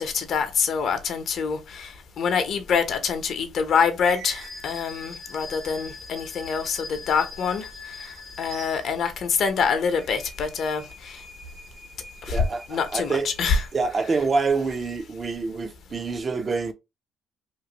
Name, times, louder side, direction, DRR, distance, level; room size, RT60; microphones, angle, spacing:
voice 1, 0.0-7.7 8.0-8.1 8.4-11.2 12.3-12.4 12.7-13.7, left 6 dB, 60° left, 0.7 m, -25 dB
sound 1, 4.0-9.2 9.7-14.0, left 2 dB, 85° right, 1.4 m, -42 dB
voice 2, 12.3-13.3 13.7-16.7, right 4 dB, 35° right, 0.5 m, -26 dB
3.0 x 2.4 x 2.9 m
cardioid pair, 85°, 0 cm